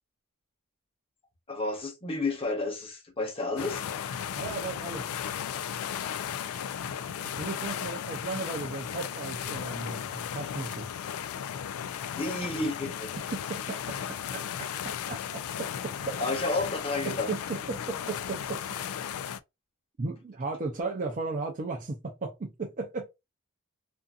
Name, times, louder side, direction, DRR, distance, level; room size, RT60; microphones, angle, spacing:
voice 1, 1.5-3.9 7.0-7.2 12.2-13.2 16.2-17.3, left 2 dB, 25° left, 0.9 m, -31 dB
sound 1, 3.6-19.4, left 9 dB, 85° left, 0.3 m, -35 dB
voice 2, 4.3-5.1 7.2-10.9 13.3-16.1 17.0-18.8 20.0-23.1, right 3 dB, 40° right, 0.5 m, -36 dB
2.6 x 2.5 x 2.3 m
head